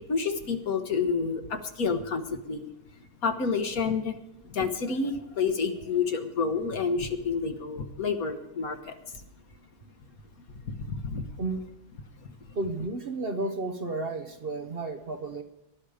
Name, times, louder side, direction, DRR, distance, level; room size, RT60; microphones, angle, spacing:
voice 1, 0.1-2.7 3.2-4.2 4.5-8.8 10.9-11.2, left 5 dB, 65° left, 7 dB, 1.7 m, -29 dB
voice 2, 12.5-15.4, right 2 dB, 45° right, 5 dB, 1.1 m, -32 dB
19.0 x 12.0 x 5.0 m, 0.87 s
omnidirectional pair, 1.6 m